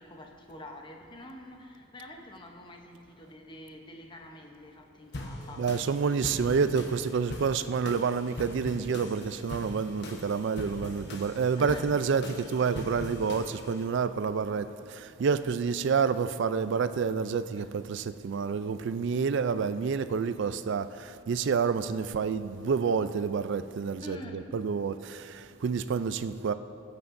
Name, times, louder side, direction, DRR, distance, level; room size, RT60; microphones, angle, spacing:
voice 1, 0.0-6.4 11.6-11.9 12.3-12.4 17.6-17.7 24.0-24.5, left 1 dB, 25° left, 0.8 m, -47 dB
sound 1, 5.1-13.8, left 1 dB, 55° left, 1.0 m, -41 dB
voice 2, 5.6-26.5, right 5 dB, 60° right, 0.3 m, -29 dB
19.0 x 8.3 x 2.6 m
head